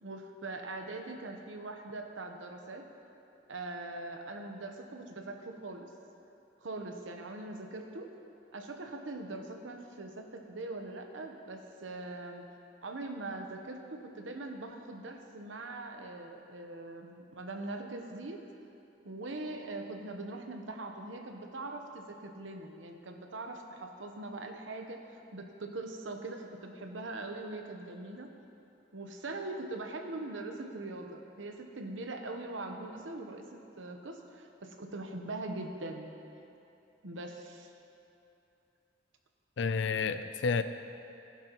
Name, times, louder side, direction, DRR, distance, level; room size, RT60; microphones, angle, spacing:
voice 1, 0.0-2.9 3.5-5.9 6.6-8.1 8.5-12.5 12.8-18.4 19.0-25.0 25.3-28.3 28.9-33.4 33.8-36.1 37.0-37.7, right 2 dB, 85° right, 4 dB, 1.0 m, -42 dB
voice 2, 39.6-40.6, left 5 dB, 70° left, 11 dB, 0.5 m, -30 dB
16.0 x 10.5 x 3.1 m, 2.8 s
head